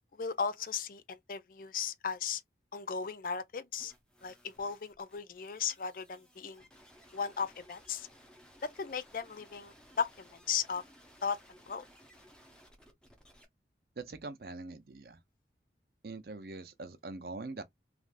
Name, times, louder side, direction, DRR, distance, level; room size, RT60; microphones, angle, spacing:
voice 1, 0.2-2.4 2.7-3.9 4.2-6.6 7.1-8.1 8.6-10.8 11.2-11.4 11.7-11.8, left 6 dB, 50° left, 0.4 m, -36 dB
sound 1, 3.8-13.4, equal, 5° left, 0.8 m, -60 dB
voice 2, 14.0-15.2 16.0-17.6, right 3 dB, 55° right, 0.6 m, -43 dB
3.3 x 2.5 x 2.4 m
head